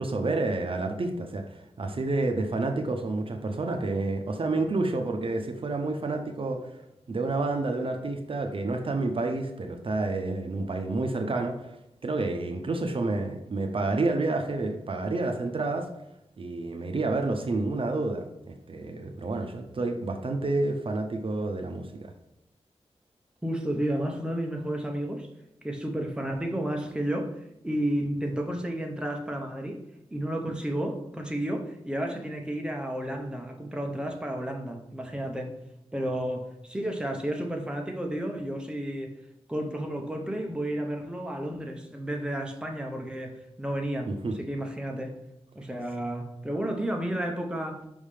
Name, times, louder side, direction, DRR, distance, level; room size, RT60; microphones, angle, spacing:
voice 1, 0.0-6.6 7.1-11.7 12.0-15.9 16.4-22.1 44.1-44.4, right 2 dB, 55° right, 5 dB, 0.6 m, -29 dB
voice 2, 23.4-25.3 25.6-29.8 30.1-35.5 35.9-39.1 39.5-45.1 45.5-47.8, right 1 dB, 10° right, 3 dB, 0.8 m, -32 dB
5.4 x 3.6 x 4.9 m, 0.84 s
wide cardioid pair, 110°, 11 cm